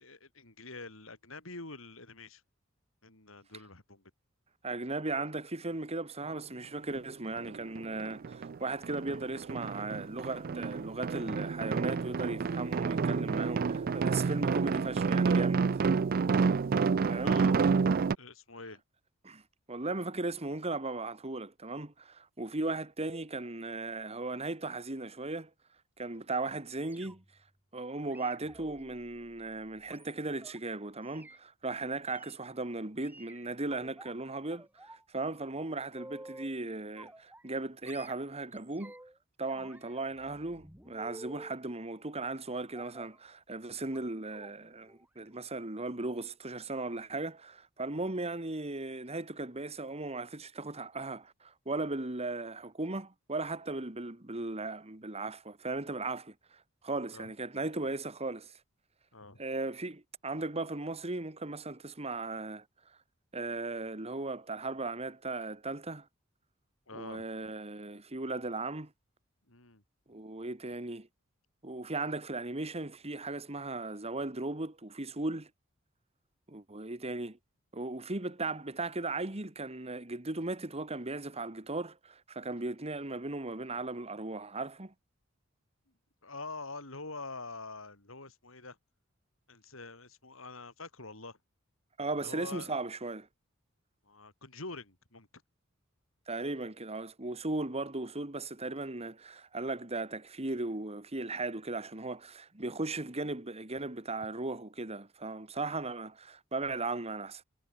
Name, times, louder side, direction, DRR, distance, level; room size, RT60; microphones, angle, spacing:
voice 1, 0.0-2.4 3.0-4.0 17.2-17.6 18.2-18.8 57.1-57.3 59.1-59.4 66.9-67.3 69.5-69.8 86.2-88.8 89.5-91.4 92.2-92.8 94.0-95.3, left 3 dB, 75° left, 5.9 m, -45 dB
voice 2, 4.6-15.6 17.1-17.4 19.2-19.4 19.7-25.5 26.0-27.2 27.7-38.9 39.4-58.5 59.4-62.6 63.3-66.1 66.9-68.9 70.1-71.1 71.6-75.5 76.5-77.4 77.7-84.9 92.0-93.3 96.3-107.4, right 2 dB, 30° right, 2.1 m, -37 dB
sound 1, 6.9-7.0 7.4-8.6 8.8-18.1, right 5 dB, 45° right, 0.4 m, -29 dB
sound 2, 26.8-27.4 28.1-30.6 31.0-31.4 32.1-32.4 33.0-34.1 34.5-35.0 35.3-36.6 37.0-37.6 37.9-39.2 39.5-41.6 42.7-43.2 43.9-44.0 44.3-44.5 44.9-45.1 45.4-45.5, right 1 dB, 10° right, 4.0 m, -52 dB
head